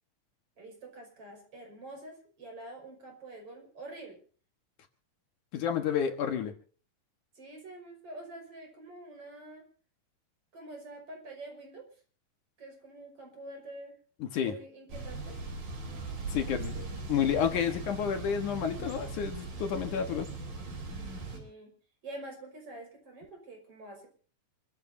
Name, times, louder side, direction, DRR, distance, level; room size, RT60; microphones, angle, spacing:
voice 1, 0.6-4.2 7.3-9.6 10.5-11.9 12.6-14.0 14.4-15.4 16.4-17.8 21.3-21.7 22.0-24.1, right 2 dB, 40° right, 2 dB, 6.2 m, -47 dB
voice 2, 5.5-6.5 14.3-14.5 16.3-16.8 17.1-20.3, left 8 dB, 65° left, 6 dB, 2.7 m, -30 dB
Thunder / Bicycle, 14.9-21.4, right 3 dB, 75° right, 6.2 m, -39 dB
27.5 x 14.5 x 2.7 m, 0.42 s
omnidirectional pair, 3.9 m